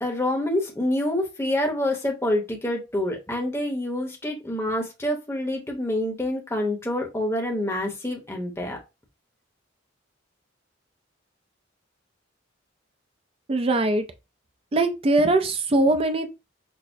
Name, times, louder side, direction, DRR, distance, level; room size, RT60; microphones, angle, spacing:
voice 1, 0.0-8.8, left 1 dB, 15° left, 0.8 m, -27 dB
voice 2, 13.5-14.0 14.7-16.4, right 2 dB, 30° right, 0.4 m, -21 dB
6.1 x 2.0 x 2.6 m
head